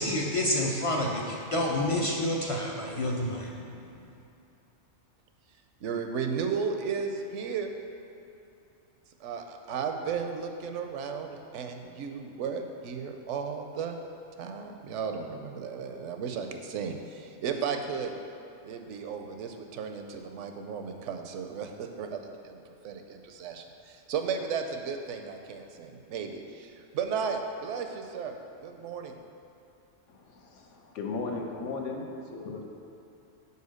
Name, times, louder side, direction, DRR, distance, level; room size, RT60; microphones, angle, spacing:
voice 1, 0.0-3.6, left 1 dB, 40° left, -3 dB, 0.5 m, -28 dB
voice 2, 5.8-7.7 9.2-14.0 14.4-18.1 18.6-22.6 22.8-29.2, right 6 dB, 75° right, 5 dB, 0.9 m, -34 dB
voice 3, 30.1-32.7, left 3 dB, 75° left, 1 dB, 1.1 m, -36 dB
5.6 x 4.5 x 6.3 m, 2.8 s
omnidirectional pair, 1.3 m